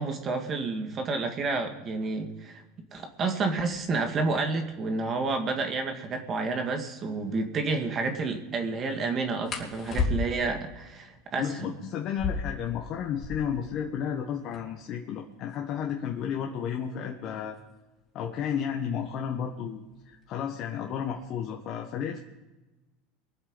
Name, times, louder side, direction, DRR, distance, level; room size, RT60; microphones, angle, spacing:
voice 1, 0.0-2.6 2.9-11.7, right 3 dB, 35° right, 4 dB, 2.1 m, -30 dB
sound 1, 6.8-7.0 9.4-10.6 12.0-13.7 14.0-14.1 14.3-14.9 15.5-18.0 19.1-19.4 19.8-20.2 20.6-21.3, left 4 dB, 30° left, 3.3 m, -34 dB
voice 2, 11.4-17.6 18.1-22.2, left 8 dB, 50° left, 1 dB, 1.5 m, -32 dB
23.5 x 7.9 x 5.4 m, 1.1 s
supercardioid pair, 120°, 0 cm